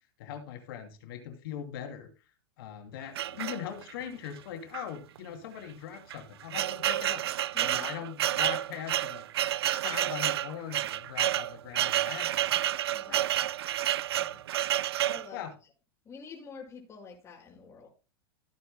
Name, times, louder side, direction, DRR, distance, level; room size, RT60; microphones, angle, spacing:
voice 1, 0.2-2.1 2.6-7.2 7.6-9.2 9.6-12.6 13.1-13.2 14.2-14.4 15.3-15.5, left 9 dB, 65° left, 2.8 m, -41 dB
sound 1, 3.2-4.0 4.7-4.9 5.2-5.3 5.9-15.3, right 12 dB, 80° right, 0.4 m, -30 dB
voice 2, 7.5-7.9 12.9-13.3 15.0-15.5 16.0-17.9, left 5 dB, 20° left, 5.8 m, -47 dB
16.5 x 9.5 x 2.2 m
hypercardioid pair, 115°, 13 cm